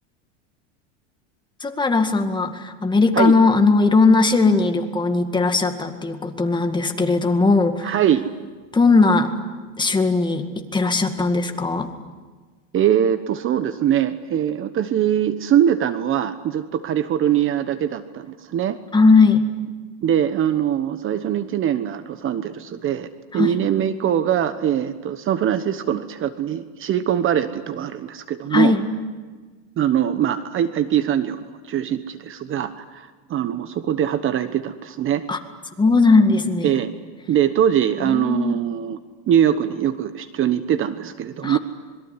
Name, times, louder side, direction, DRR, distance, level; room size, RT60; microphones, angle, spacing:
voice 1, 1.6-7.9 8.7-9.3 9.8-10.5 10.7-11.9 18.9-19.4 23.3-23.5 28.5-28.9 35.3-35.4 35.8-36.7 38.0-38.6 41.4-41.6, left 3 dB, 10° left, 6 dB, 2.1 m, -18 dB
voice 2, 7.8-8.2 12.7-18.8 20.0-28.7 29.8-35.2 36.6-36.9 37.3-39.0 39.3-41.6, right 10 dB, 35° right, 11 dB, 1.1 m, -22 dB
26.5 x 22.0 x 9.7 m, 1.4 s
supercardioid pair, 130°, 37 cm